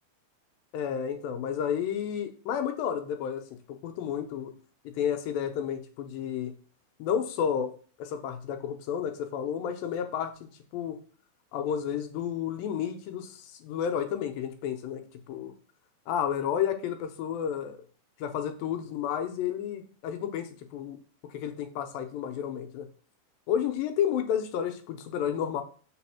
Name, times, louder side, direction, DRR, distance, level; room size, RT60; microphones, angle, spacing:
voice 1, 0.7-3.4 3.7-4.5 4.9-6.5 7.0-7.7 8.0-11.0 11.5-15.0 15.3-15.5 16.1-17.8 18.2-21.0 21.3-22.9 23.5-25.6, left 8 dB, 85° left, 7 dB, 2.4 m, -31 dB
4.8 x 4.2 x 5.8 m, 0.41 s
omnidirectional pair, 4.2 m